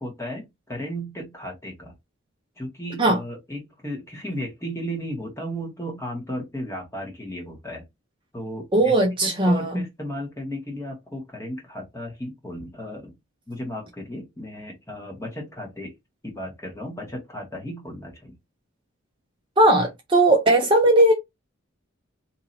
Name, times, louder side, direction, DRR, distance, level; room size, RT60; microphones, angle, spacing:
voice 1, 0.0-2.0 2.6-7.8 8.3-13.2 13.5-15.9 16.2-18.4, equal, 15° left, 1.4 m, -35 dB
voice 2, 8.7-9.7 19.6-21.1, right 1 dB, 25° right, 0.6 m, -18 dB
2.8 x 2.7 x 3.9 m
head